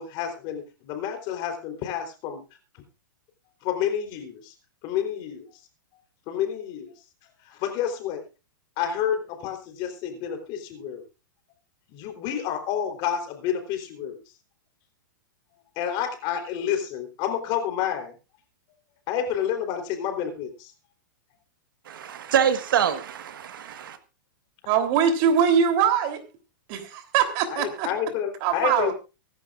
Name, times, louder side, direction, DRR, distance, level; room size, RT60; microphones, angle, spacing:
voice 1, 0.0-2.4 3.6-4.5 4.8-5.5 6.3-6.9 7.4-8.2 8.8-11.0 11.9-14.2 15.8-18.1 19.1-20.7 27.5-28.9, left 9 dB, 40° left, 3.8 m, -29 dB
voice 2, 21.9-24.0, right 8 dB, 75° right, 1.6 m, -25 dB
voice 3, 24.7-26.2 26.7-27.9 28.4-28.9, right 7 dB, 45° right, 3.5 m, -22 dB
24.0 x 11.0 x 2.5 m
hypercardioid pair, 125°, 11 cm